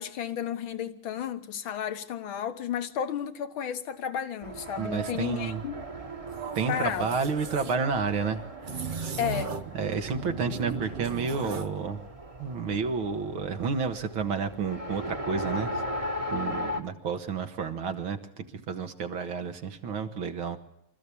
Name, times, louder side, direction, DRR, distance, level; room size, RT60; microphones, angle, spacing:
voice 1, 0.0-5.8 6.7-7.1 9.2-9.6, left 9 dB, 70° left, 2.1 m, -32 dB
Race car auto racing, 4.4-16.8, equal, 20° right, 1.3 m, -38 dB
voice 2, 4.8-5.6 6.6-9.1 9.7-12.0 12.4-15.8 16.3-20.6, right 5 dB, 70° right, 2.3 m, -31 dB
sound 1, 6.3-7.7 8.6-9.8 10.0-11.8, right 5 dB, 55° right, 0.5 m, -37 dB
26.0 x 14.0 x 8.5 m
omnidirectional pair, 2.3 m